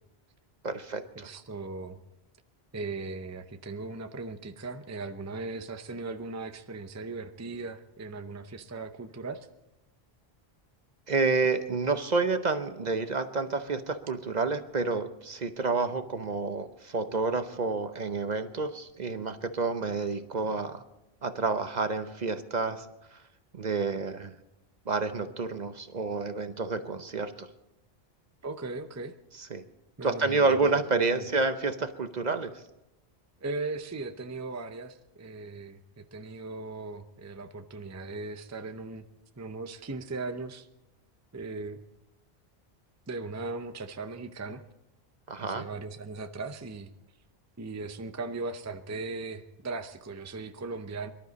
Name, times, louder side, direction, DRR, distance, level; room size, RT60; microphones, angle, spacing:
voice 1, 0.6-1.3 11.1-20.8 21.2-22.9 23.1-23.2 23.5-24.3 24.9-27.5 29.4-29.6 30.0-32.5 45.3-45.7, right 4 dB, 45° right, 9 dB, 0.8 m, -29 dB
voice 2, 1.2-2.0 2.7-9.5 28.4-29.1 30.0-31.2 33.4-39.0 39.4-40.7 41.3-41.8 43.1-44.6 45.4-46.9 47.6-51.1, right 3 dB, 20° right, 8 dB, 0.6 m, -38 dB
23.5 x 12.0 x 4.1 m, 0.91 s
omnidirectional pair, 1.1 m